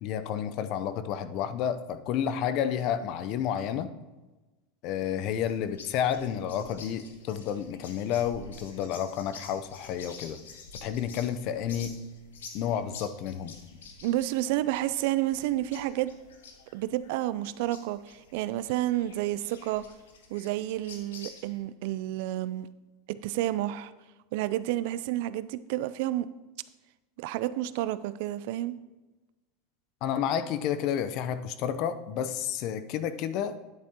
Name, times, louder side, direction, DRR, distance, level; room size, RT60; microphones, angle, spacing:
voice 1, 0.0-3.9 4.8-10.4 10.8-11.9 12.5-13.5 30.0-33.7, left 9 dB, 55° left, 12 dB, 0.6 m, -30 dB
sound 1, 5.1-21.6, left 4 dB, 90° left, 1.2 m, -49 dB
voice 2, 14.0-16.1 16.7-19.8 20.3-22.7 23.1-23.9 24.3-26.3 27.2-28.8, right 14 dB, 65° right, 15 dB, 0.4 m, -30 dB
9.8 x 8.4 x 2.9 m, 1.1 s
hypercardioid pair, 105°, 0 cm